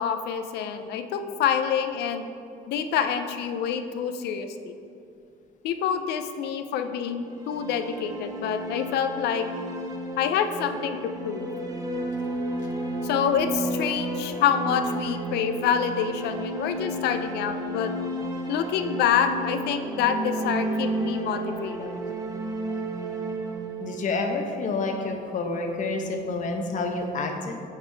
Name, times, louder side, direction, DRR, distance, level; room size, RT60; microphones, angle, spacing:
voice 1, 0.0-2.2 2.7-4.7 5.6-9.5 10.2-11.5 13.0-17.9 18.5-22.0, left 8 dB, 75° left, 8 dB, 0.5 m, -27 dB
sound 1, 7.2-25.2, right 1 dB, 20° right, 1.0 m, -32 dB
voice 2, 23.8-27.6, left 3 dB, 50° left, 3 dB, 0.8 m, -29 dB
8.8 x 4.9 x 3.4 m, 2.6 s
cardioid pair, 110°, 17 cm